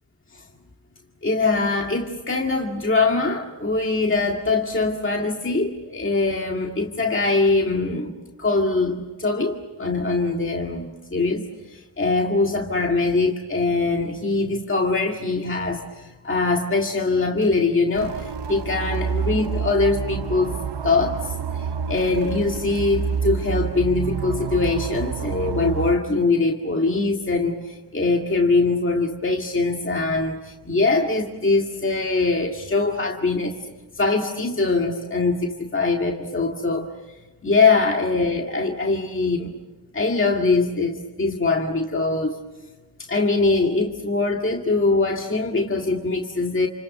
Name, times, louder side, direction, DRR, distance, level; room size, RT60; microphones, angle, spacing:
voice 1, 1.2-8.1 8.4-11.4 11.7-20.5 20.8-33.6 33.9-36.9 37.4-39.5 39.9-42.4 43.0-46.7, left 3 dB, 30° left, 1 dB, 2.0 m, -22 dB
sound 1, 17.9-25.9, right 6 dB, 85° right, 0.9 m, -28 dB
29.0 x 28.0 x 6.8 m, 1.2 s
wide cardioid pair, 110°, 41 cm